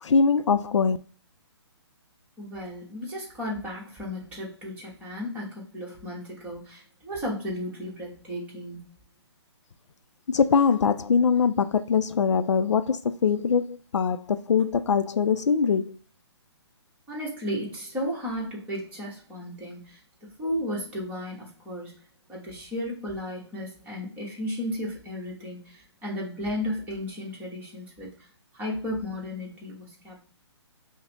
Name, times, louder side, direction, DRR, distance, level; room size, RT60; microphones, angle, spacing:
voice 1, 0.0-1.0 10.3-16.0, left 6 dB, 90° left, 0.4 m, -22 dB
voice 2, 2.4-8.8 17.1-20.0 20.4-21.9 22.3-28.3 28.5-30.2, left 1 dB, 10° right, 1.2 m, -34 dB
5.3 x 2.1 x 2.9 m
hypercardioid pair, 150°, 15 cm